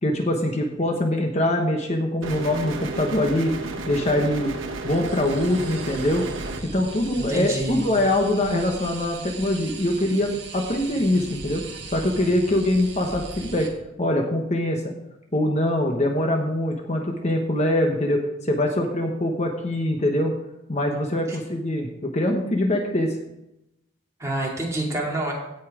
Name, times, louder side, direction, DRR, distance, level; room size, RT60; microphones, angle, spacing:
voice 1, 0.0-3.5 3.9-4.5 4.8-6.3 6.6-11.6 11.9-13.7 14.0-14.9 15.3-20.3 20.7-23.1, left 1 dB, 35° left, 2 dB, 1.1 m, -23 dB
sound 1, 2.2-6.6, right 2 dB, 85° right, 1.3 m, -32 dB
sound 2, 4.8-13.7, right 3 dB, 60° right, 2.1 m, -39 dB
voice 2, 7.2-7.8 21.3-21.4 24.2-25.3, right 1 dB, 15° right, -3 dB, 2.5 m, -27 dB
16.5 x 5.6 x 4.9 m, 0.87 s
head